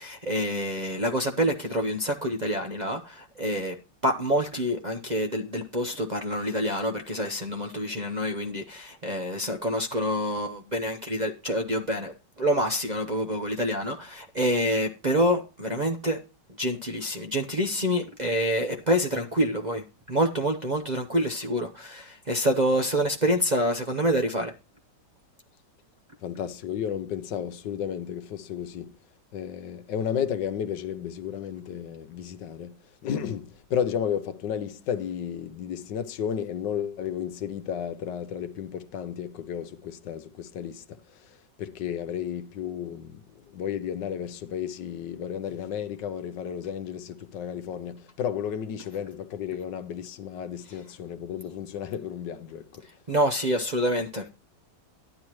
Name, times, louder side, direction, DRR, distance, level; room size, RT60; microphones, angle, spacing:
voice 1, 0.0-3.7 4.0-16.2 16.6-24.5 53.1-54.3, equal, 35° right, 0.7 m, -27 dB
voice 2, 26.2-29.0 29.3-32.8 33.0-41.0 41.6-52.8, left 8 dB, 80° left, 1.5 m, -33 dB
12.5 x 10.0 x 3.1 m
omnidirectional pair, 1.9 m